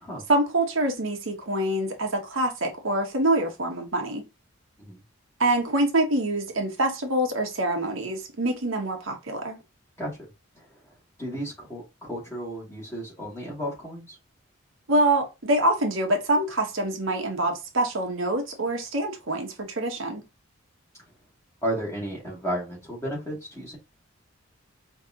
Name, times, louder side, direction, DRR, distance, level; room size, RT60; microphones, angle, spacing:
voice 1, 0.3-4.2 5.4-9.6 14.9-20.2, right 1 dB, 75° right, 1.3 m, -25 dB
voice 2, 11.2-14.1 21.6-23.8, right 1 dB, 15° left, 2.6 m, -33 dB
5.0 x 3.3 x 2.9 m
head